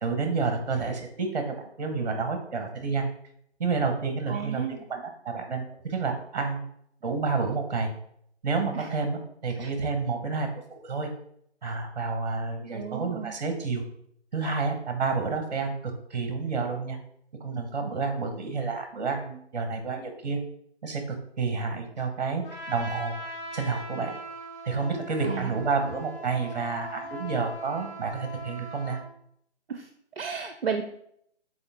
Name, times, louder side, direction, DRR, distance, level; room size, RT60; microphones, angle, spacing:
voice 1, 0.0-3.1 3.6-4.6 4.9-6.6 7.0-7.9 8.4-11.1 11.6-13.8 14.3-17.0 17.4-20.4 20.8-23.1 23.5-24.2 24.6-29.0, right 4 dB, 35° right, 5 dB, 1.2 m, -29 dB
voice 2, 4.3-4.8 8.7-8.9 9.6-9.7 12.7-13.3 25.2-25.5 29.7-29.9 30.2-30.8, right 6 dB, 55° right, 6 dB, 0.6 m, -33 dB
Trumpet, 22.4-29.1, right 1 dB, 5° left, 2.2 m, -40 dB
7.0 x 4.4 x 3.5 m, 0.71 s
figure-of-eight pair, 150°, 35 cm